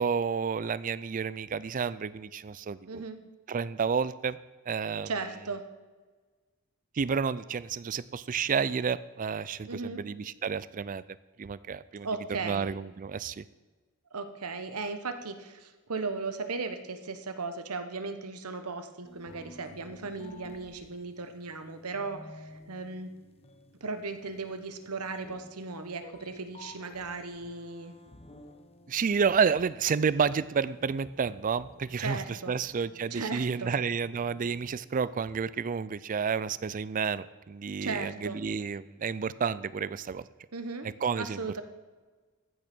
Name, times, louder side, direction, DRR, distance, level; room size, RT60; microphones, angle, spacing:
voice 1, 0.0-3.0 3.5-4.4 4.7-5.1 7.0-11.0 11.4-13.4 28.9-32.2 32.5-40.2 41.0-41.6, right 6 dB, 35° right, 17 dB, 0.4 m, -30 dB
voice 2, 2.9-3.2 5.0-5.6 9.7-10.0 12.0-12.7 14.1-23.1 23.8-27.9 32.0-32.6 33.1-33.7 37.8-38.4 40.5-40.9 41.2-41.6, right 4 dB, 90° right, 8 dB, 1.1 m, -37 dB
sound 1, 19.0-34.8, left 1 dB, 30° left, 0.9 m, -54 dB
14.5 x 6.3 x 6.1 m, 1.3 s
head